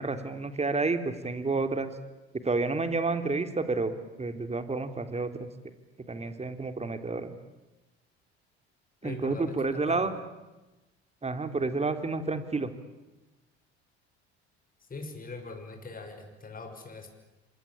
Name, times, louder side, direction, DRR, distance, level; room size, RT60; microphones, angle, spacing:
voice 1, 0.0-1.9 2.4-5.5 6.1-7.3 9.0-10.1 11.2-12.7, right 3 dB, 20° right, 8 dB, 3.4 m, -30 dB
voice 2, 9.0-10.1 14.9-17.1, left 3 dB, 25° left, 4 dB, 6.3 m, -41 dB
27.0 x 25.0 x 8.8 m, 1.1 s
hypercardioid pair, 65°, 33 cm